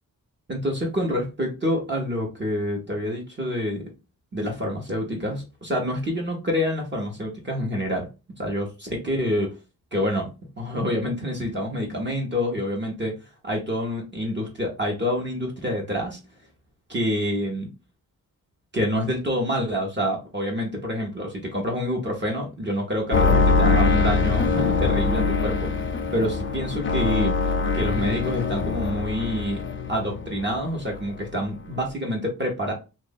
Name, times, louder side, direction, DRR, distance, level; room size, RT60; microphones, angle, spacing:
voice 1, 0.5-3.9 4.3-8.1 8.4-9.6 9.9-10.3 10.6-13.2 13.4-16.2 16.9-17.7 18.7-27.4 27.7-29.6 29.9-32.7, equal, 30° right, 0 dB, 0.9 m, -27 dB
sound 1, 23.1-30.6 30.9-31.5 31.8-31.9, left 4 dB, 35° left, 0.5 m, -23 dB
3.0 x 2.5 x 3.9 m, 0.29 s
wide cardioid pair, 165°, 36 cm